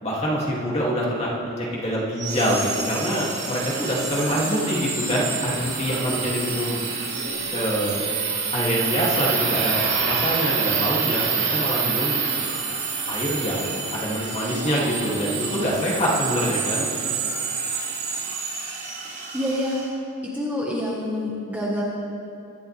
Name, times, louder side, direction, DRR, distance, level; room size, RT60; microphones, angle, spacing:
voice 1, 0.0-6.8 7.5-8.1 8.5-12.2 13.1-16.9, equal, 30° left, -4 dB, 2.5 m, -25 dB
sound 1, 2.2-19.8, right 5 dB, 50° right, 3.8 m, -27 dB
voice 2, 4.3-4.7 19.3-19.8 20.3-21.8, left 1 dB, 5° right, -5 dB, 1.5 m, -27 dB
22.5 x 12.0 x 3.4 m, 2.6 s
head